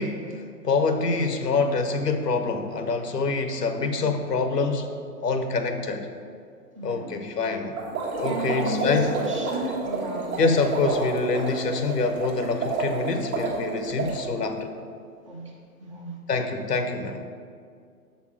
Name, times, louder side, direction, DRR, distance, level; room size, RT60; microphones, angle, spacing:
voice 1, 0.0-4.9 5.2-6.1 6.8-7.7 8.2-9.1 10.4-14.7 16.3-17.2, left 4 dB, 80° left, 7 dB, 0.8 m, -26 dB
voice 2, 6.8-7.1 8.2-10.3 15.3-15.5 15.8-16.2, equal, 20° right, -2 dB, 0.5 m, -32 dB
sound 1, 7.8-14.2, right 3 dB, 60° right, 1.3 m, -30 dB
6.9 x 4.1 x 4.6 m, 2.2 s
figure-of-eight pair, 125°, 48 cm